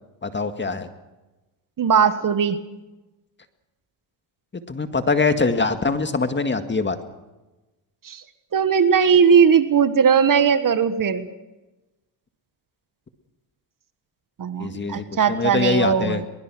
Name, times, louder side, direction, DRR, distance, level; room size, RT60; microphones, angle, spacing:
voice 1, 0.2-0.9 4.7-7.0 14.6-16.2, left 3 dB, 25° left, 8 dB, 1.9 m, -23 dB
voice 2, 1.8-2.6 8.0-8.2 8.5-11.2 14.4-16.3, right 6 dB, 45° right, 12 dB, 1.5 m, -18 dB
23.0 x 21.0 x 6.2 m, 1.1 s
cardioid pair, 90°, 47 cm